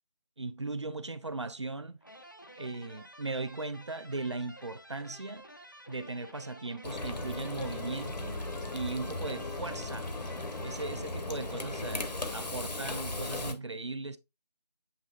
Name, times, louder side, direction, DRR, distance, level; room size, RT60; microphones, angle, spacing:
voice 1, 0.4-2.0 2.6-5.5 5.9-8.4 8.7-10.1 10.6-14.2, right 3 dB, 45° right, 0.4 m, -38 dB
sound 1, 2.0-12.0, right 1 dB, 30° left, 0.4 m, -51 dB
Frying (food), 6.8-13.5, left 2 dB, 80° left, 1.0 m, -37 dB
7.9 x 2.9 x 2.3 m
figure-of-eight pair, 170°, 21 cm